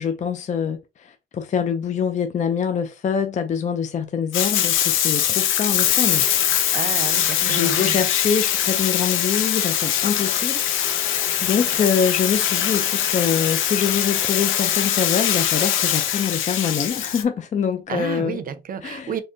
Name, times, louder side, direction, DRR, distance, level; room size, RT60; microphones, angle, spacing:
voice 1, 0.0-6.3 7.4-18.4 18.8-19.2, left 7 dB, 35° left, 0.4 m, -25 dB
Bathtub (filling or washing), 4.3-17.2, left 10 dB, 80° left, 0.6 m, -22 dB
voice 2, 6.7-8.0 17.9-19.2, right 7 dB, 45° right, 0.6 m, -30 dB
3.7 x 2.1 x 3.8 m
cardioid pair, 90°, 20 cm